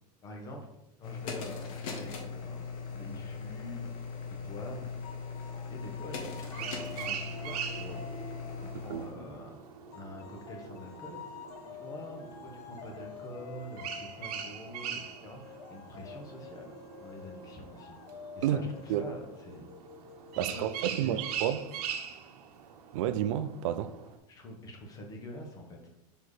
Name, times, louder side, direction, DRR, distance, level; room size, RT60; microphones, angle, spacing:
voice 1, 0.2-2.6 2.9-5.0 5.7-8.1 8.6-9.6 9.9-18.0 18.3-19.7 20.3-21.2 24.3-25.8, left 1 dB, 20° left, 0.9 m, -46 dB
sound 1, 1.0-9.1, left 5 dB, 60° left, 1.2 m, -40 dB
sound 2, 5.0-9.4 9.9-21.3, left 7 dB, 80° left, 0.8 m, -49 dB
sound 3, 6.4-24.2, right 8 dB, 75° right, 1.0 m, -42 dB
voice 2, 18.4-19.1 20.4-21.6 22.9-23.9, right 10 dB, 55° right, 0.4 m, -30 dB
5.5 x 4.4 x 4.8 m
supercardioid pair, 170°, 20 cm